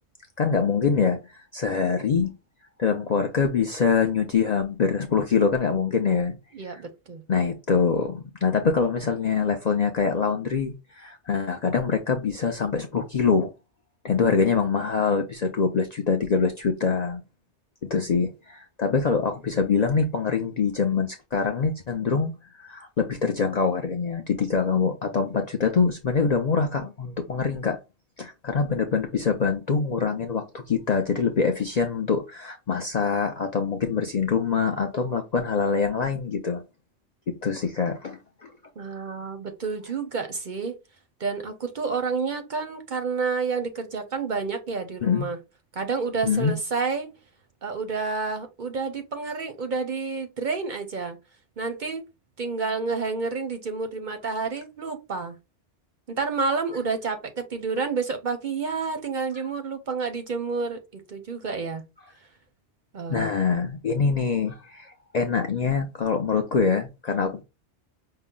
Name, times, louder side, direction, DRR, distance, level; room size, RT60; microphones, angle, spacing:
voice 1, 0.4-2.3 2.8-6.4 6.6-6.8 7.3-13.5 14.0-17.2 17.8-27.8 28.2-36.6 37.3-38.5 45.0-45.3 46.2-46.5 63.1-67.4, left 5 dB, 50° left, 0.5 m, -24 dB
voice 2, 6.5-7.2 38.8-40.8 41.2-45.4 45.7-47.1 47.6-51.2 51.6-52.0 52.4-55.4 56.1-61.8 62.9-63.3, right 4 dB, 50° right, 0.6 m, -29 dB
5.5 x 2.0 x 3.6 m
omnidirectional pair, 1.2 m